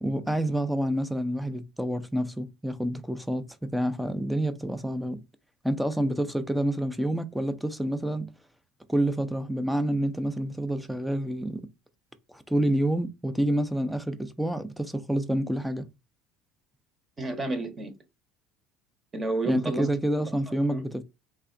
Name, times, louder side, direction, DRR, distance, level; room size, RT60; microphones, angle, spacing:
voice 1, 0.0-5.2 5.6-8.3 8.9-11.7 12.3-15.9 19.4-21.0, right 1 dB, 5° right, 0.5 m, -28 dB
voice 2, 17.2-17.9 19.1-19.9 20.2-20.8, right 2 dB, 25° right, 0.9 m, -31 dB
3.3 x 2.4 x 3.7 m
supercardioid pair, 115°, 0 cm